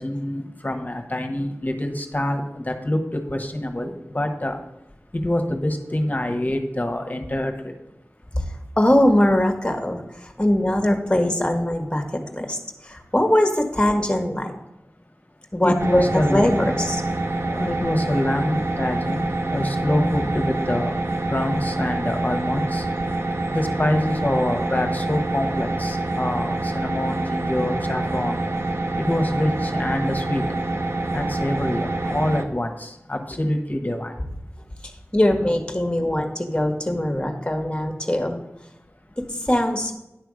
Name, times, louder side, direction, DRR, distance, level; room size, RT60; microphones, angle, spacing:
voice 1, 0.0-4.6 5.1-7.8 15.6-16.7 17.4-20.9 21.2-22.9 23.5-28.4 28.9-30.5 31.1-34.1 39.1-39.2, left 1 dB, 35° left, 4 dB, 1.2 m, -25 dB
voice 2, 8.8-12.0 12.4-14.5 15.5-17.0 19.9-20.3 32.0-32.1 34.8-38.4 39.4-39.9, left 1 dB, 20° left, 4 dB, 1.4 m, -21 dB
sound 1, 15.8-32.4, right 2 dB, 60° right, 0.7 m, -26 dB
10.0 x 3.4 x 6.3 m, 0.92 s
wide cardioid pair, 40°, 5 cm